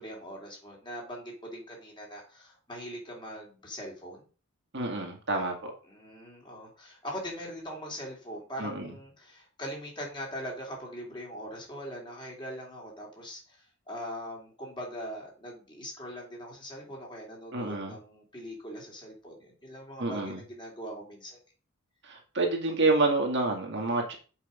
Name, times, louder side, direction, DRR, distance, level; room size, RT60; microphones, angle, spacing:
voice 1, 0.0-4.2 5.8-21.4, equal, 20° left, -1 dB, 3.0 m, -41 dB
voice 2, 4.7-5.7 8.6-8.9 17.5-17.9 20.0-20.4 22.0-24.1, right 3 dB, 55° right, 1 dB, 2.1 m, -28 dB
7.8 x 5.5 x 5.1 m, 0.37 s
head